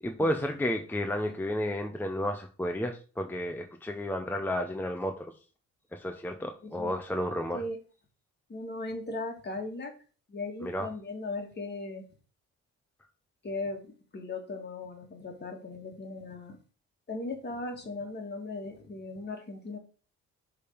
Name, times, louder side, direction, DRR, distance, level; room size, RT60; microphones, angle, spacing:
voice 1, 0.0-5.3 5.9-7.6 10.6-10.9, left 1 dB, 5° left, 4 dB, 0.7 m, -32 dB
voice 2, 6.6-6.9 7.5-7.8 8.5-9.9 10.3-12.0 13.4-16.6 17.1-19.8, left 2 dB, 35° left, 3 dB, 1.9 m, -38 dB
6.4 x 3.6 x 5.1 m, 0.37 s
cardioid pair, 90°, 30 cm